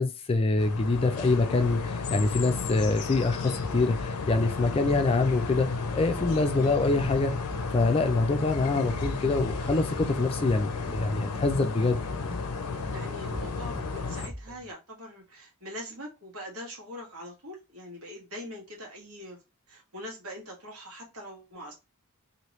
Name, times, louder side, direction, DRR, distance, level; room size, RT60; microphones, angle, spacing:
voice 1, 0.0-5.7 5.9-7.3 7.7-12.0, left 3 dB, 25° left, 0.4 m, -25 dB
sound 1, 0.6-14.3, left 4 dB, 90° left, 0.5 m, -33 dB
sound 2, 7.0-14.7, equal, 25° right, 0.6 m, -43 dB
voice 2, 12.9-19.4 19.7-21.7, equal, 80° right, 1.4 m, -42 dB
3.0 x 2.7 x 3.0 m
head